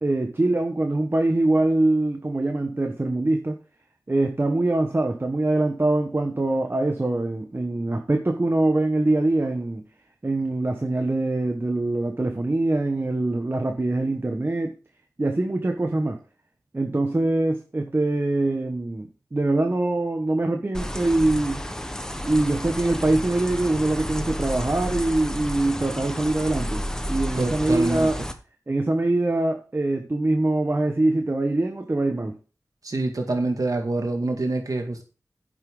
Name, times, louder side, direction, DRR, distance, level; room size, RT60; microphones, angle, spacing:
voice 1, 0.0-3.6 4.1-9.8 10.2-14.7 15.2-16.2 16.7-21.6 22.2-28.1 28.7-32.4, right 2 dB, 35° right, 5 dB, 1.3 m, -23 dB
sound 1, 20.7-28.3, equal, 10° left, 1.2 m, -31 dB
voice 2, 27.4-28.1 32.8-35.0, right 2 dB, 65° right, 4 dB, 2.2 m, -26 dB
9.9 x 7.6 x 3.9 m, 0.34 s
wide cardioid pair, 65°, 6 cm